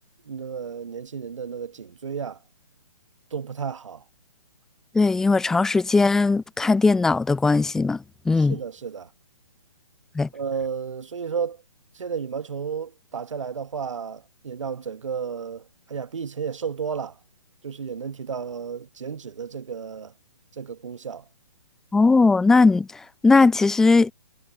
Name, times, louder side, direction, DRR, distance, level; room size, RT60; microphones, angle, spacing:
voice 1, 0.2-2.4 3.3-4.0 8.4-9.1 10.3-11.6 11.9-17.2 17.6-20.1 20.5-21.2, right 6 dB, 60° right, 1.1 m, -32 dB
voice 2, 4.9-8.6 10.1-10.3 21.9-24.1, left 3 dB, 5° left, 0.4 m, -19 dB
figure-of-eight pair, 130°, 18 cm